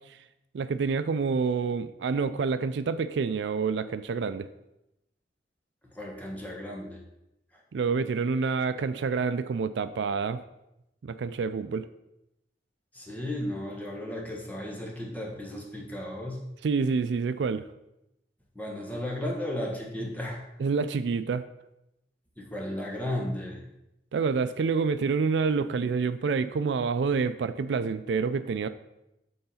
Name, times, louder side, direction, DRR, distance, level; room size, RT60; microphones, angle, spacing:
voice 1, 0.5-4.5 7.7-10.4 11.0-11.9 16.6-17.7 20.6-21.4 24.1-28.7, right 5 dB, 70° right, 12 dB, 0.4 m, -27 dB
voice 2, 5.9-7.0 12.9-16.4 18.5-20.4 22.4-23.6, left 1 dB, 10° left, -2 dB, 1.4 m, -34 dB
7.9 x 3.9 x 5.6 m, 0.88 s
head